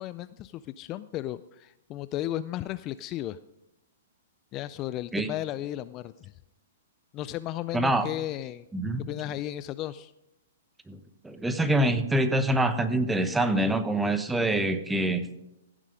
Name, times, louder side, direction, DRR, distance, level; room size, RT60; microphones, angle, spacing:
voice 1, 0.0-3.4 4.5-6.3 7.1-8.7 9.1-10.1, left 13 dB, 35° left, 15 dB, 0.3 m, -34 dB
voice 2, 7.7-8.1 8.7-9.1 10.9-11.0 11.2-15.3, right 1 dB, 5° right, 10 dB, 0.9 m, -25 dB
16.0 x 7.4 x 5.1 m, 0.91 s
hypercardioid pair, 125°, 0 cm